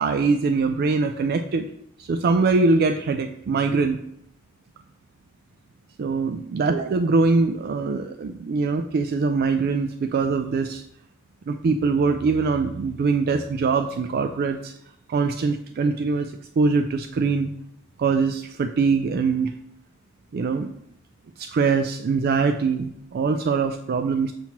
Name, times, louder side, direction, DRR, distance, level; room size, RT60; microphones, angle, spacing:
voice 1, 0.0-1.7 2.0-4.0 6.0-10.8 11.5-14.7 15.1-17.5 18.0-19.5 20.3-20.7 21.4-24.3, right 4 dB, 45° right, 8 dB, 0.3 m, -23 dB
7.1 x 2.9 x 5.7 m, 0.72 s
head